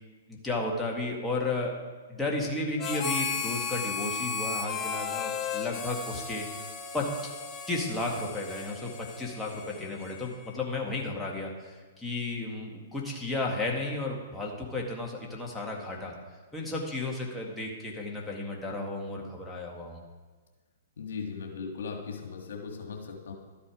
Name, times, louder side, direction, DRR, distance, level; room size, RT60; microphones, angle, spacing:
voice 1, 0.3-1.7 2.1-6.7 6.9-7.3 7.7-16.1 16.5-20.0, left 2 dB, 5° left, -3 dB, 1.9 m, -33 dB
Harmonica, 2.8-10.5, left 6 dB, 25° left, 1.4 m, -35 dB
voice 2, 21.0-23.3, left 5 dB, 75° left, 3 dB, 1.7 m, -38 dB
12.5 x 8.5 x 4.9 m, 1.4 s
hypercardioid pair, 130°, 0 cm